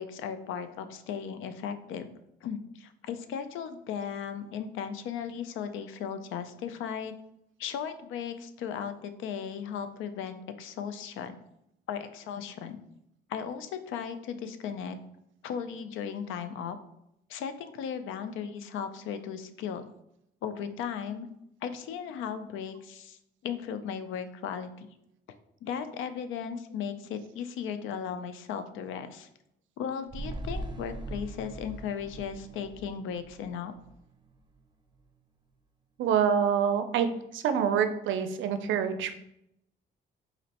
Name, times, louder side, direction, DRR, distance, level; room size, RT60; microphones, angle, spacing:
voice 1, 0.0-2.1 2.4-7.1 7.6-11.4 11.9-12.8 13.3-15.0 15.4-16.8 17.3-19.9 20.4-21.3 21.6-23.2 23.4-24.9 25.6-29.3 29.8-33.7, left 7 dB, 85° left, 10 dB, 0.4 m, -36 dB
sound 1, 30.1-34.6 34.9-35.0, right 2 dB, 20° right, 0.5 m, -41 dB
voice 2, 36.0-37.1 37.3-39.2, right 8 dB, 75° right, 9 dB, 0.4 m, -26 dB
4.0 x 3.0 x 2.8 m, 0.79 s
cardioid pair, 90°, 20 cm